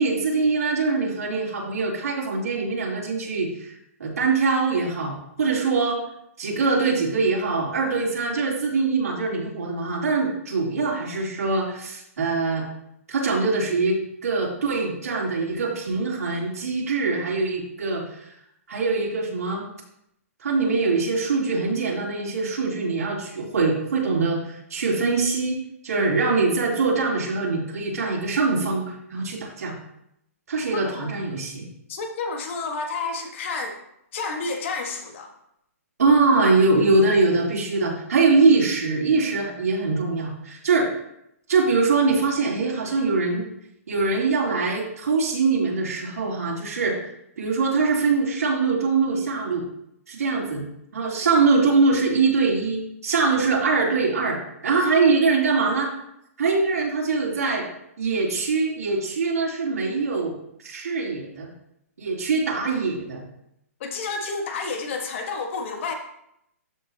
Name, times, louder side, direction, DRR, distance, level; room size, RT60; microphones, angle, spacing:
voice 1, 0.0-3.7 4.0-6.0 6.4-12.6 13.1-18.3 18.7-19.7 20.4-29.7 30.5-31.7 36.0-40.9 41.5-43.5 43.9-47.0 47.4-49.6 50.1-50.6 50.9-55.9 56.4-57.6 58.0-60.3 60.6-61.5 62.0-63.2, right 4 dB, 80° right, -3 dB, 3.4 m, -23 dB
voice 2, 30.7-31.1 31.9-33.8 34.1-35.3 51.2-51.3 63.8-65.9, left 4 dB, 50° left, 4 dB, 1.6 m, -30 dB
13.0 x 5.6 x 2.9 m, 0.77 s
hypercardioid pair, 140°, 8 cm